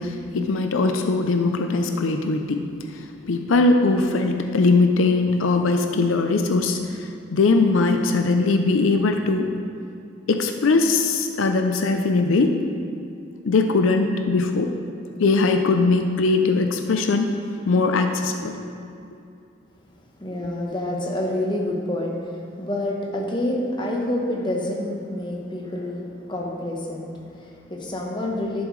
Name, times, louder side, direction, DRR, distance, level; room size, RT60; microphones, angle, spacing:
voice 1, 0.0-2.7 2.9-9.5 10.3-12.6 13.5-14.7 15.2-17.3 17.6-18.6, left 3 dB, 80° left, 6 dB, 0.5 m, -20 dB
voice 2, 20.2-28.6, left 1 dB, 25° left, -1 dB, 1.0 m, -28 dB
11.5 x 7.2 x 3.2 m, 2.6 s
head